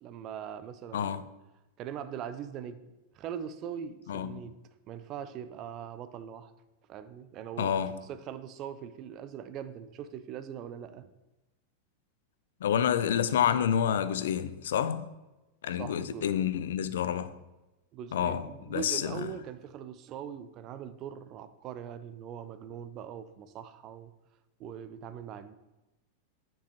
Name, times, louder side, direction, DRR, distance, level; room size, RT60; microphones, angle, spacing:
voice 1, 0.0-1.2 1.8-2.8 3.1-4.6 4.9-6.5 6.9-7.8 8.1-11.1 15.8-16.3 17.9-24.1 24.6-25.5, right 8 dB, 35° right, 0.4 m, -41 dB
voice 2, 4.1-4.4 7.6-8.0 12.6-15.1 15.6-17.3 18.1-19.2, left 9 dB, 60° left, 0.3 m, -28 dB
9.2 x 4.6 x 2.9 m
figure-of-eight pair, 90°, 0 cm